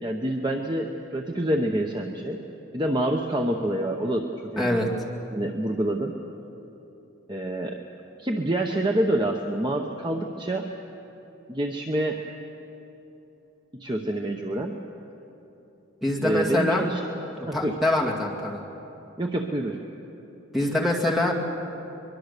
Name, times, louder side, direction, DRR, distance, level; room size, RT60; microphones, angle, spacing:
voice 1, 0.0-2.4 2.7-4.9 5.3-6.2 7.3-7.8 8.2-10.7 11.5-12.2 13.7-14.8 16.2-17.0 17.5-17.8 19.2-19.8 20.6-20.7, right 1 dB, 20° right, 2 dB, 0.9 m, -27 dB
voice 2, 4.6-4.9 16.0-16.8 17.5-18.6 20.5-21.3, left 1 dB, ahead, -2 dB, 2.3 m, -24 dB
23.0 x 23.0 x 6.8 m, 3.0 s
head